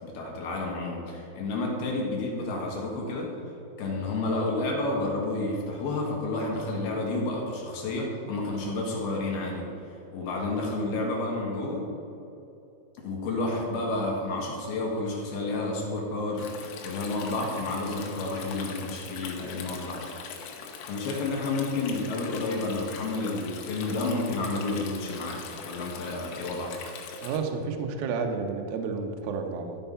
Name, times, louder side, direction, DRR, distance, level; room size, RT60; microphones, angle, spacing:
voice 1, 0.0-3.3 3.8-9.6 10.1-11.8 13.0-20.3 20.9-26.7, left 2 dB, 65° left, -2 dB, 3.1 m, -30 dB
Stream, 16.4-27.4, left 6 dB, 85° left, 3.6 m, -42 dB
voice 2, 27.2-29.8, right 5 dB, 80° right, 4 dB, 2.1 m, -31 dB
12.5 x 5.7 x 5.6 m, 3.0 s
omnidirectional pair, 5.5 m